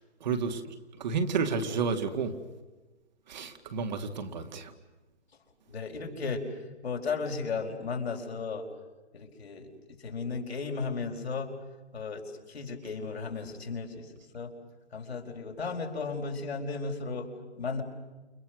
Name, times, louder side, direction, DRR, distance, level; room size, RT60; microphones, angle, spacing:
voice 1, 0.2-0.6 1.0-2.3 3.3-4.7, right 5 dB, 40° right, 5 dB, 2.3 m, -30 dB
voice 2, 5.7-6.4 6.8-8.6 9.1-9.7 10.0-11.5 11.9-12.2 12.5-14.0 14.3-14.5 14.9-17.3 17.6-17.8, left 4 dB, 65° left, 2 dB, 4.8 m, -34 dB
29.5 x 29.5 x 6.5 m, 1.2 s
hypercardioid pair, 150°, 34 cm